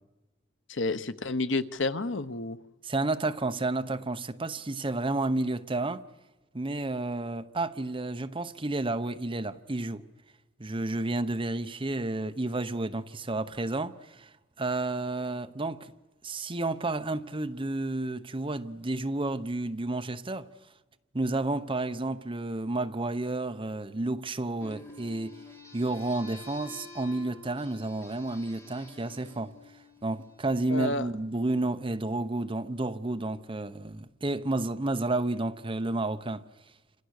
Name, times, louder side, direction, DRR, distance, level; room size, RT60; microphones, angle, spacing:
voice 1, 0.7-2.6 30.7-31.1, left 2 dB, 70° left, 1.0 m, -30 dB
voice 2, 2.8-6.0 6.5-10.0 10.6-15.9 16.2-20.5 21.1-25.4 25.7-29.5 30.0-36.4, right 2 dB, 30° right, 0.9 m, -31 dB
sound 1, 24.6-30.6, left 3 dB, 15° left, 3.1 m, -49 dB
29.0 x 26.5 x 6.6 m
head